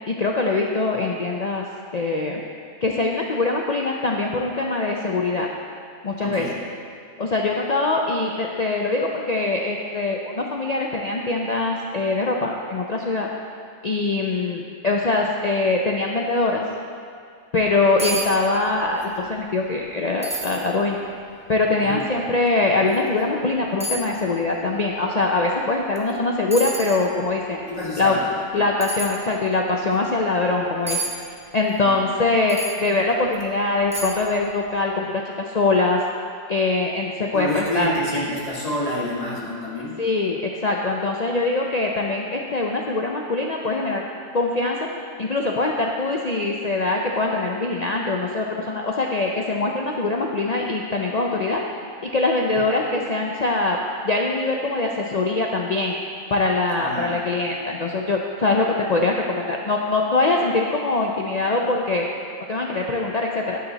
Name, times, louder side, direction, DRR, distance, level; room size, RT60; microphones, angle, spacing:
voice 1, 0.0-1.6 1.9-2.4 2.8-5.5 6.0-6.5 7.2-13.3 13.8-16.6 17.5-21.0 21.5-27.6 28.0-28.1 28.5-31.0 31.5-36.0 36.5-37.9 40.0-44.0 44.3-44.8 45.2-51.6 52.0-53.8 54.0-55.9 56.3-62.1 62.5-63.6, left 3 dB, 60° left, -1 dB, 0.4 m, -23 dB
voice 2, 6.2-6.6 21.8-22.0 27.6-28.2 28.5-28.6 31.8-31.9 37.3-40.0 56.8-57.2, left 1 dB, 30° left, -7 dB, 1.9 m, -28 dB
sound 1, 17.6-17.7 18.0-18.3 18.6-19.1 19.5-19.6 20.2-20.6 21.3-21.4 22.9-23.0 23.8-24.1 25.9-26.1 26.5-27.0 28.8-29.1 30.9-31.1 32.5-32.8 33.3-33.4 33.9-34.3 34.6-34.7, right 1 dB, 15° right, 0.8 m, -29 dB
9.6 x 7.5 x 4.0 m, 2.3 s
omnidirectional pair, 1.4 m